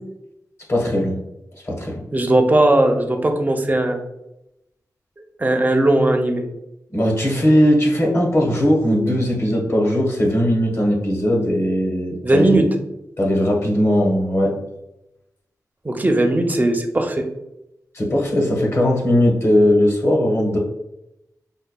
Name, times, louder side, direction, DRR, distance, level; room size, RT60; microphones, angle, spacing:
voice 1, 0.7-1.2 1.6-2.1 6.9-12.6 13.2-14.6 17.9-20.6, equal, 40° left, -1 dB, 1.1 m, -18 dB
voice 2, 2.1-4.0 5.4-6.4 12.2-12.7 15.8-17.2, right 1 dB, 25° right, 4 dB, 0.6 m, -18 dB
5.5 x 2.3 x 2.2 m, 0.87 s
cardioid pair, 65°, 7 cm